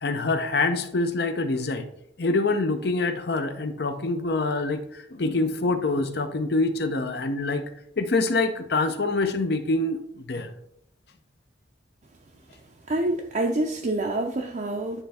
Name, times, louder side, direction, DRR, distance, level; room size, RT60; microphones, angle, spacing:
voice 1, 0.0-1.8 2.2-7.7 8.0-10.5, left 3 dB, 55° left, 8 dB, 0.7 m, -25 dB
voice 2, 12.9-15.0, right 2 dB, 40° right, 1 dB, 0.5 m, -27 dB
9.8 x 3.4 x 4.2 m, 0.74 s
head